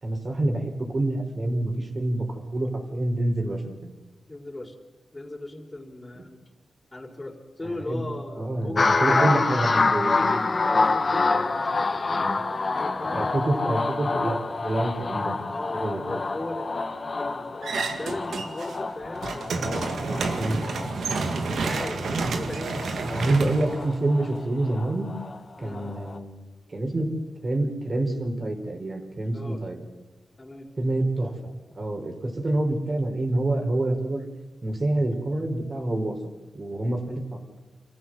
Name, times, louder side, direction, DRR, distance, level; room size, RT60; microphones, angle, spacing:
voice 1, 0.0-3.9 6.2-6.3 7.6-8.1 8.4-10.2 13.1-16.2 20.3-20.6 23.0-25.1 25.6-26.4 26.7-27.1 27.4-29.8 30.8-31.3 31.7-34.3 34.6-36.2 36.5-37.4, right 2 dB, 40° right, 3 dB, 4.6 m, -27 dB
voice 2, 4.3-4.8 5.1-6.4 6.9-8.8 10.2-13.2 15.5-16.7 17.2-20.5 21.3-23.4 25.6-25.9 29.3-29.6 30.4-30.7 35.3-35.5, left 1 dB, 20° left, 1 dB, 4.2 m, -38 dB
sound 1, 8.8-25.4 25.7-26.2, left 3 dB, 40° left, 1.6 m, -27 dB
sound 2, 17.6-18.8 19.1-24.4, right 4 dB, 80° right, 2.0 m, -30 dB
27.5 x 15.0 x 7.8 m, 1.2 s
wide cardioid pair, 95°, 0 cm